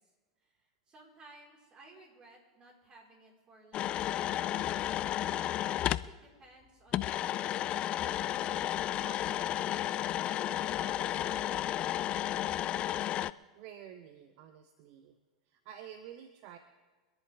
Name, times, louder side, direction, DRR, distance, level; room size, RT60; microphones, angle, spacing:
voice 1, 0.9-4.9 5.7-7.1 7.4-8.4 9.0-9.9 10.2-12.2, right 2 dB, 35° right, 0 dB, 4.5 m, -57 dB
sound 1, 3.7-6.1 6.9-13.3, left 12 dB, 40° left, 0.4 m, -32 dB
voice 2, 13.5-15.2 15.5-16.6, right 10 dB, 55° right, 8 dB, 1.0 m, -50 dB
26.0 x 11.0 x 3.5 m, 1.3 s
hypercardioid pair, 95°, 3 cm